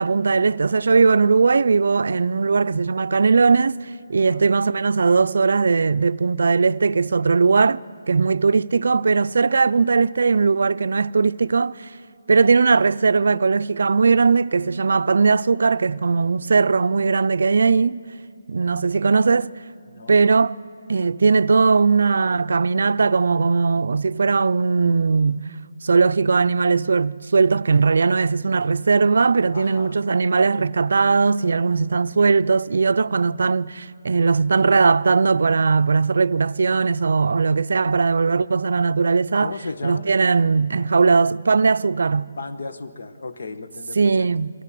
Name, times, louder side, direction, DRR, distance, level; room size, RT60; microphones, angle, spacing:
voice 1, 0.0-7.8 8.1-11.9 12.3-18.0 18.5-19.5 20.1-20.6 20.9-25.5 25.8-39.5 39.8-42.3 44.0-44.5, right 4 dB, 70° right, 0.4 m, -19 dB
voice 2, 19.9-20.3 29.5-30.0 39.4-40.1 42.4-44.3, left 3 dB, 70° left, 1.2 m, -35 dB
22.5 x 17.0 x 7.6 m
hypercardioid pair, 165°, 0 cm